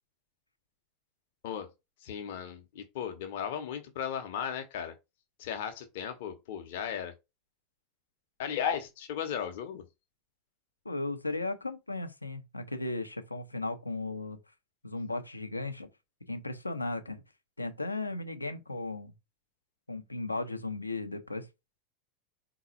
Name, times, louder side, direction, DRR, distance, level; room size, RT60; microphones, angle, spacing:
voice 1, 2.0-4.9 5.4-7.1 8.4-9.9, left 8 dB, 55° left, 0.8 m, -36 dB
voice 2, 10.8-14.4 14.8-15.9 16.3-17.2 17.6-19.1 19.9-21.5, left 2 dB, 85° left, 0.6 m, -36 dB
3.9 x 2.3 x 4.2 m
figure-of-eight pair, 85°, 0 cm